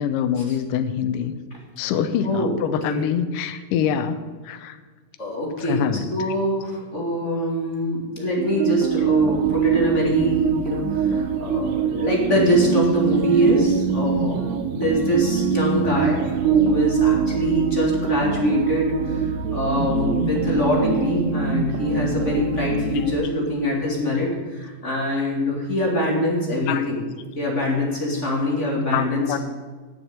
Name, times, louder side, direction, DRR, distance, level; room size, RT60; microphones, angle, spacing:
voice 1, 0.0-1.3 1.8-4.2 4.5-4.8 5.6-6.0 26.7-26.8 28.9-29.4, left 8 dB, 75° left, 9 dB, 2.3 m, -24 dB
voice 2, 2.2-2.6 2.9-3.0 5.2-5.8 6.1-27.0 27.4-29.4, equal, 25° left, -3 dB, 2.0 m, -23 dB
sound 1, 8.4-23.1, right 7 dB, 75° right, 2.1 m, -23 dB
10.5 x 7.1 x 8.0 m, 1.4 s
omnidirectional pair, 4.0 m